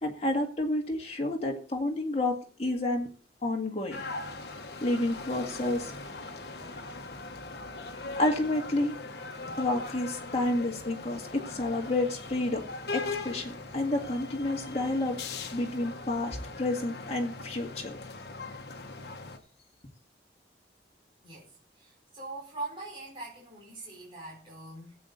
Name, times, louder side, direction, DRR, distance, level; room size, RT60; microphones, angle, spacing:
voice 1, 0.0-3.1 3.4-4.0 4.8-5.9 8.2-9.0 9.6-12.6 12.9-15.2 15.5-18.0, left 2 dB, 35° left, 2.0 m, -30 dB
sound 1, 3.9-19.4, left 3 dB, 60° left, 1.3 m, -40 dB
voice 2, 21.2-25.0, right 2 dB, 30° right, 4.3 m, -42 dB
14.0 x 8.3 x 4.0 m
head